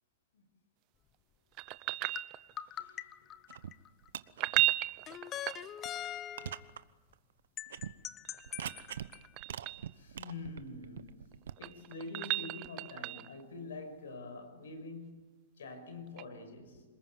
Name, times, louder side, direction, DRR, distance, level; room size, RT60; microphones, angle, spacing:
sound 1, 1.6-2.8 4.3-6.1 8.3-9.9 11.3-13.4 16.2-16.3, right 18 dB, 40° right, 0.8 m, -35 dB
sound 2, 2.2-4.1 5.1-6.7 7.6-9.3, left 11 dB, 25° left, 0.9 m, -43 dB
voice 1, 2.6-3.1 9.9-11.2 11.6-16.8, left 3 dB, 85° left, 6.0 m, -46 dB
sound 3, 3.5-3.7 4.0-4.6 5.1-5.2 5.9-6.0 6.4-6.8 7.1-7.2 7.7-7.9 8.4-9.1 9.4-11.5, right 9 dB, 80° right, 1.0 m, -43 dB
27.5 x 20.5 x 9.4 m
hypercardioid pair, 135°, 0 cm